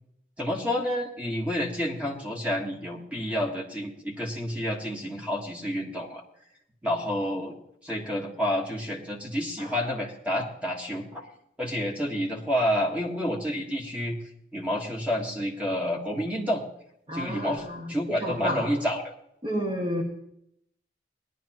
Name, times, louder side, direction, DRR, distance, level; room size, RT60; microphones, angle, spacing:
voice 1, 0.4-6.2 6.8-7.6 7.8-11.3 11.6-14.2 14.5-16.6 17.1-19.1, equal, 10° right, -2 dB, 1.5 m, -29 dB
voice 2, 17.1-18.7 19.4-20.0, equal, 30° right, -1 dB, 1.7 m, -31 dB
19.0 x 11.0 x 3.0 m, 0.74 s
head